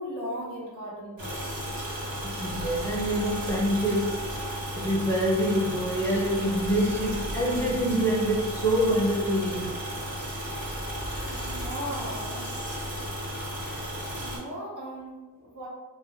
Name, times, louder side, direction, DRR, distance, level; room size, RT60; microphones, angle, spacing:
voice 1, 0.0-1.6 11.3-12.7 14.2-15.1 15.4-15.7, equal, 60° right, -6 dB, 0.9 m, -37 dB
sound 1, 1.2-14.4, equal, 80° right, 1.1 m, -34 dB
voice 2, 2.2-4.3 4.8-9.7, equal, 10° left, -5 dB, 0.5 m, -26 dB
2.9 x 2.1 x 2.6 m, 1.2 s
wide cardioid pair, 85°, 35 cm